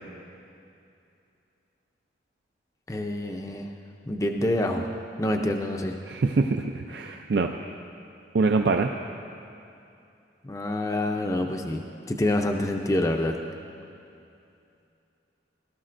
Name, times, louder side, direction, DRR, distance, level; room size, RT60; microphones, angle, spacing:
voice 1, 2.9-3.7 4.1-4.9 5.2-6.0 10.4-13.4, left 1 dB, 20° left, 3 dB, 0.5 m, -27 dB
voice 2, 6.1-7.5 8.3-8.9, right 3 dB, 65° right, 4 dB, 0.4 m, -24 dB
17.5 x 12.5 x 2.5 m, 2.6 s
head